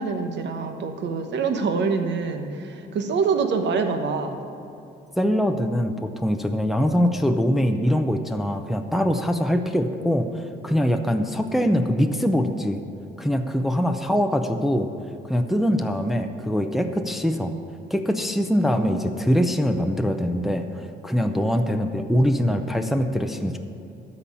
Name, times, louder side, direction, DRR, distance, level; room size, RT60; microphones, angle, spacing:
voice 1, 0.0-4.4, right 5 dB, 65° right, 6 dB, 1.0 m, -25 dB
voice 2, 5.2-12.8 13.2-14.9 15.2-17.5 17.9-23.6, equal, ahead, 5 dB, 0.6 m, -23 dB
12.5 x 4.3 x 8.4 m, 2.8 s
cardioid pair, 90°, 20 cm